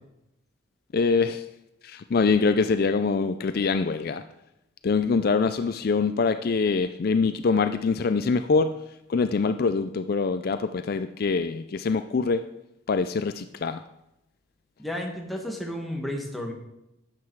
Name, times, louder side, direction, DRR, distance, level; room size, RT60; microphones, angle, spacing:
voice 1, 0.9-1.4 1.8-4.2 4.8-8.7 9.1-12.4 12.9-13.8, left 4 dB, 45° left, 10 dB, 0.4 m, -24 dB
voice 2, 14.8-16.5, left 1 dB, ahead, 0 dB, 1.6 m, -32 dB
11.5 x 8.6 x 4.7 m, 0.87 s
head